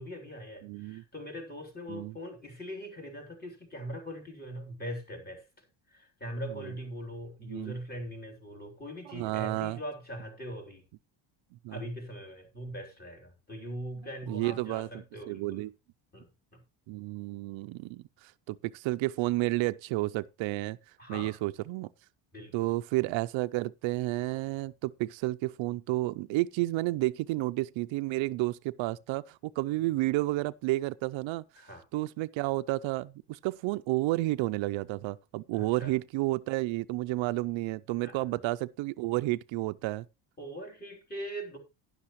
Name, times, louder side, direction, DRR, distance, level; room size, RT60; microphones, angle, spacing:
voice 1, 0.0-5.5 5.9-10.8 11.7-15.7 16.1-16.6 21.0-21.4 22.3-22.7 31.6-31.8 35.5-35.9 38.0-38.2 40.4-41.6, equal, 20° left, 3.2 m, -41 dB
voice 2, 0.6-1.0 1.9-2.1 7.5-7.8 9.1-9.8 11.6-11.8 14.3-14.9 15.3-15.7 16.9-20.8 21.1-21.9 22.5-31.4 31.9-40.0, right 19 dB, 75° right, 0.6 m, -31 dB
12.0 x 10.5 x 3.0 m
cardioid pair, 155°, 47 cm